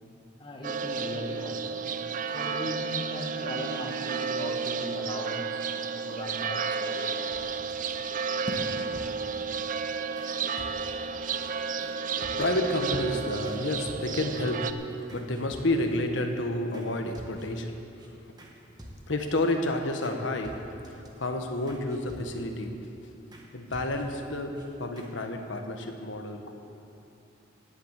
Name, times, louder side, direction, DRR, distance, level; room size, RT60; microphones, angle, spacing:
voice 1, 0.4-1.9 2.3-5.5 6.0-7.6 8.5-8.7, left 1 dB, 25° left, 0 dB, 1.7 m, -38 dB
sound 1, 0.6-14.7, right 5 dB, 40° right, 0.5 m, -32 dB
sound 2, 7.3-7.9 8.5-9.5 10.2-10.3 10.6-11.1 11.4-11.5 11.8-12.0 12.2-12.7 13.4-13.6 13.9-14.5 15.1-16.0 16.7-16.9 17.1-17.7 18.0-18.1 18.4-18.5 18.8-19.3 20.0-20.2 20.4-21.1 21.7-22.6 23.3-23.5 23.7-24.3 24.6-24.7 25.0-25.1, equal, 20° right, 1.5 m, -48 dB
voice 2, 12.4-17.8 18.3-18.4 19.1-22.9 23.5-26.5, left 1 dB, 70° left, 4 dB, 1.3 m, -30 dB
17.5 x 7.5 x 8.2 m, 2.8 s
head